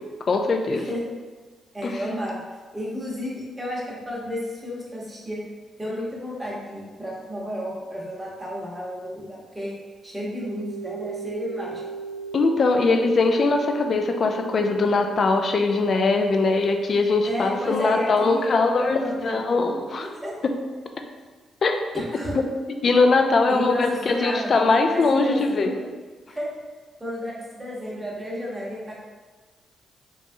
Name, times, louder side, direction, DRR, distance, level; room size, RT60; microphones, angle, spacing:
voice 1, 0.2-0.8 1.8-2.0 12.3-20.1 21.6-21.8 22.8-25.7, left 3 dB, 50° left, 5 dB, 0.3 m, -21 dB
voice 2, 0.7-1.0 1.7-2.4 2.7-5.4 5.8-9.7 10.0-11.8 17.2-20.3 21.9-22.4 23.5-25.9 26.3-26.5 27.0-29.0, equal, 15° right, -5 dB, 0.9 m, -32 dB
sound 1, 10.2-15.2, right 5 dB, 80° right, 0.3 m, -37 dB
3.0 x 2.3 x 2.6 m, 1.4 s
cardioid pair, 80°, 0 cm